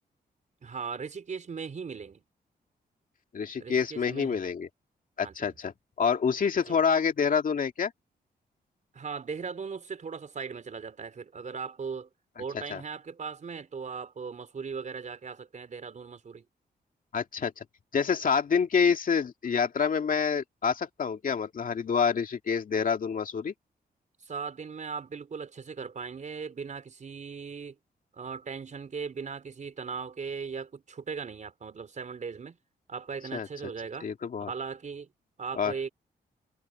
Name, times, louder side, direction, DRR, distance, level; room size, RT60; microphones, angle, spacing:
voice 1, 0.6-2.2 3.6-4.4 5.2-5.5 6.7-6.8 8.9-12.1 12.4-16.4 24.2-27.8 28.1-32.6 32.9-34.1 34.4-35.1 35.4-35.9, right 5 dB, 45° right, 4.4 m, -38 dB
voice 2, 3.3-4.7 5.2-7.9 12.7-12.8 17.1-17.6 17.9-23.5 33.3-33.5 34.0-34.5 35.5-35.7, left 6 dB, 55° left, 2.2 m, -27 dB
cardioid pair, 105°, 17 cm